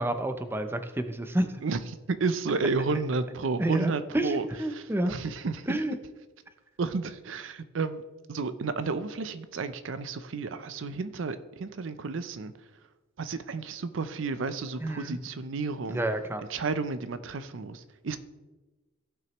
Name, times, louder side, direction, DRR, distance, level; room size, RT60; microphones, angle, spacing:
voice 1, 0.0-1.6 3.6-5.1 5.7-6.0 14.8-15.2 15.9-16.4, right 1 dB, 10° right, 8 dB, 0.5 m, -29 dB
voice 2, 2.1-4.5 4.7-5.8 6.8-8.0 8.3-12.5 13.2-16.0 16.5-18.2, right 4 dB, 70° right, 12 dB, 0.5 m, -31 dB
17.0 x 6.1 x 3.0 m, 1.2 s
head